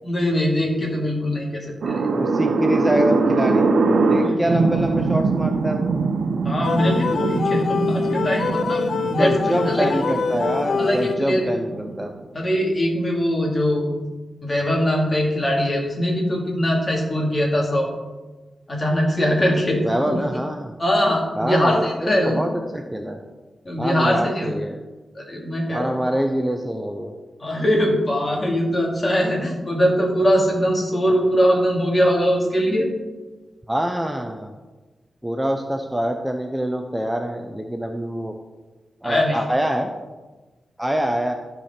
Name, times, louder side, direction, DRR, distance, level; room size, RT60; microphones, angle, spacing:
voice 1, 0.0-2.1 4.2-4.7 6.4-8.8 9.1-10.1 10.8-11.4 12.3-14.1 14.4-17.9 18.7-20.2 20.8-22.4 23.6-24.6 25.2-26.0 27.4-32.9 39.0-39.4, equal, 30° left, -1 dB, 2.6 m, -22 dB
sound 1, 1.8-12.2, right 4 dB, 85° right, 0.7 m, -23 dB
voice 2, 2.1-3.7 4.1-6.0 9.2-12.1 19.8-20.7 21.4-23.2 23.8-24.8 25.7-27.1 33.7-34.5 35.2-38.3 39.0-39.9 40.8-41.3, equal, 10° right, 4 dB, 0.7 m, -25 dB
sound 2, 6.6-11.5, left 5 dB, 70° left, 0.5 m, -25 dB
14.5 x 5.0 x 4.4 m, 1.2 s
wide cardioid pair, 95°, 0 cm